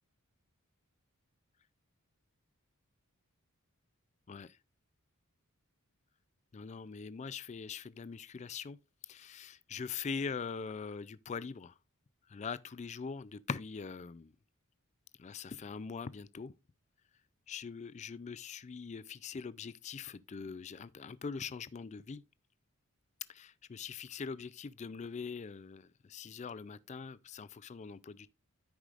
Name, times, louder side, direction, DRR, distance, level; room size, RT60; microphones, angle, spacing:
voice 1, 6.5-8.8 9.1-11.7 12.3-14.3 15.2-16.5 17.5-22.2 23.3-28.3, left 5 dB, 30° left, 0.3 m, -42 dB
14.0 x 4.9 x 2.4 m
head